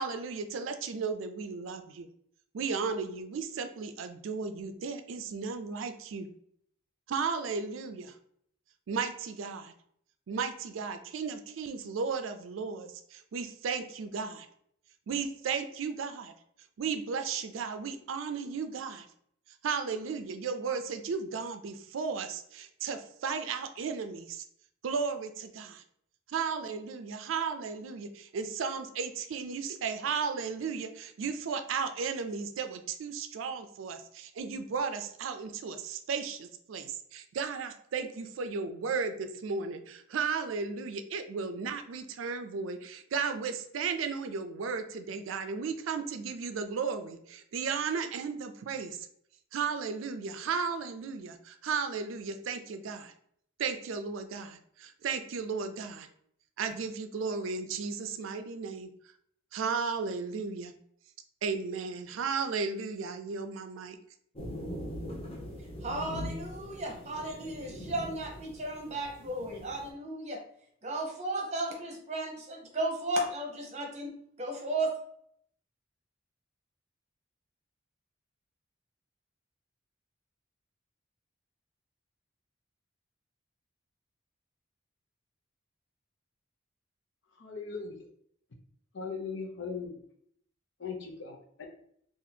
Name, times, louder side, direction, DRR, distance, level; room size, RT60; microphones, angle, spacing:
voice 1, 0.0-2.1 2.5-6.3 7.1-8.1 8.9-9.7 10.3-14.5 15.1-16.3 16.8-19.1 19.6-24.4 24.8-25.8 26.3-49.1 49.5-53.1 53.6-56.1 56.6-58.9 59.5-60.7 61.4-64.0, right 5 dB, 90° right, 8 dB, 0.4 m, -35 dB
sound 1, 64.4-69.9, equal, 30° left, 0.7 m, -42 dB
voice 2, 65.8-70.4 70.8-74.9, right 1 dB, 35° right, 0 dB, 0.9 m, -34 dB
voice 3, 87.4-88.0 88.9-90.0 90.8-91.6, left 5 dB, 65° left, 1 dB, 0.7 m, -38 dB
2.7 x 2.4 x 4.1 m, 0.67 s
head